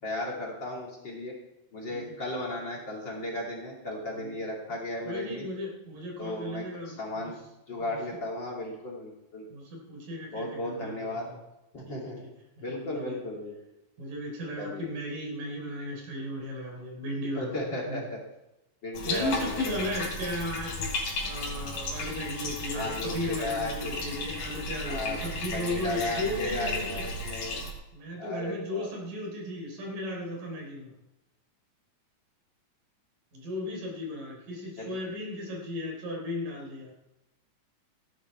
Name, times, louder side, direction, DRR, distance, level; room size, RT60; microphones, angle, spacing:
voice 1, 0.0-1.3 1.7-5.5 6.2-7.3 7.7-9.4 10.3-11.3 11.7-12.2 12.6-13.5 14.6-14.9 17.3-18.2 18.8-19.9 22.7-23.9 24.9-25.2 25.5-27.6 28.2-28.9 34.8-35.0, left 1 dB, 35° left, -3 dB, 3.2 m, -35 dB
voice 2, 5.0-7.3 7.8-8.0 9.5-11.4 11.9-12.3 12.6-13.2 14.0-17.6 17.8-18.0 19.1-20.9 21.2-27.1 27.9-30.9 33.3-36.9, left 1 dB, 85° right, 0 dB, 5.4 m, -36 dB
Bathtub (filling or washing), 18.9-27.7, left 2 dB, 85° left, 3.8 m, -35 dB
16.5 x 11.0 x 4.6 m, 0.93 s
omnidirectional pair, 3.7 m